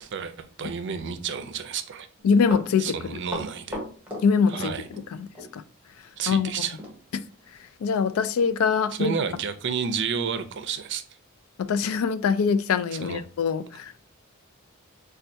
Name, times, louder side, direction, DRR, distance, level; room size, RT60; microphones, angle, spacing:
voice 1, 0.0-2.1 2.8-3.8 4.5-4.9 6.2-6.8 8.9-11.0 13.0-13.2, right 6 dB, 55° right, 0.4 m, -31 dB
voice 2, 2.2-3.2 4.2-4.7 5.1-5.3 5.5-5.6 6.3-6.7 7.1-7.2 7.8-9.1 11.6-14.1, left 5 dB, 85° left, 0.3 m, -23 dB
Run, 2.2-5.1 5.3-5.5 6.8-7.0 7.3-7.4 7.9-8.0 8.4-8.5 9.1-9.2, left 1 dB, 5° right, 0.9 m, -36 dB
4.4 x 2.3 x 2.6 m
head